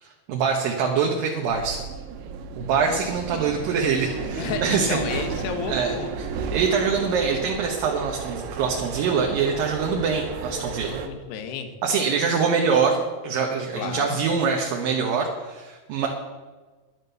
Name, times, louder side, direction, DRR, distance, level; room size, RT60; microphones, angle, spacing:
voice 1, 0.0-1.8 2.6-5.0 5.7-11.0 11.8-13.0 13.2-16.1, right 5 dB, 70° right, 1 dB, 2.6 m, -24 dB
sound 1, 1.5-11.1, right 6 dB, 85° right, 3.0 m, -33 dB
voice 2, 4.3-6.1 11.0-11.7 13.7-14.2, left 7 dB, 80° left, 8 dB, 3.2 m, -32 dB
11.0 x 11.0 x 6.8 m, 1.3 s
omnidirectional pair, 4.7 m